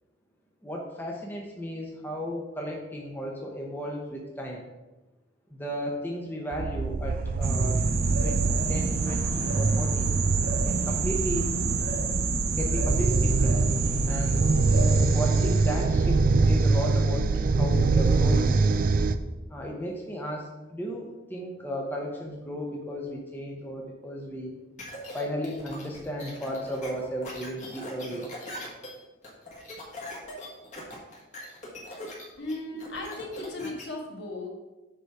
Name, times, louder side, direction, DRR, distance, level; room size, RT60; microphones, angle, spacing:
voice 1, 0.6-4.6 5.5-7.8 8.2-10.1 10.6-11.6 12.6-13.6 14.0-14.5 15.1-18.5 19.5-24.5 25.1-28.3, equal, 10° left, -1 dB, 0.8 m, -34 dB
sound 1, 6.5-19.1, right 3 dB, 45° right, 0.3 m, -24 dB
sound 2, 7.4-15.8, right 4 dB, 85° right, 1.0 m, -29 dB
sound 3, 24.8-33.8, left 1 dB, 35° left, 1.6 m, -41 dB
voice 2, 32.4-34.5, left 2 dB, 60° left, -1 dB, 1.5 m, -36 dB
6.8 x 4.9 x 4.7 m, 1.1 s
head